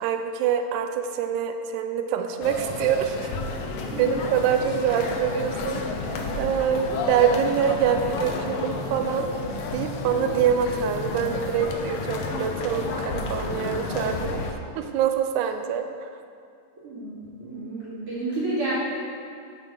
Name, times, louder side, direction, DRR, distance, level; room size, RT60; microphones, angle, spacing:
voice 1, 0.0-3.3 4.0-5.8 6.1-9.3 9.7-14.5 14.8-16.1, right 8 dB, 85° right, 6 dB, 2.0 m, -25 dB
sound 1, 2.4-14.5, left 3 dB, 70° left, 1.8 m, -31 dB
voice 2, 3.7-4.1 16.8-18.8, right 2 dB, 50° right, -11 dB, 3.5 m, -31 dB
sound 2, 7.0-11.7, left 1 dB, 40° left, 0.7 m, -43 dB
7.7 x 5.9 x 6.5 m, 2.3 s
omnidirectional pair, 3.4 m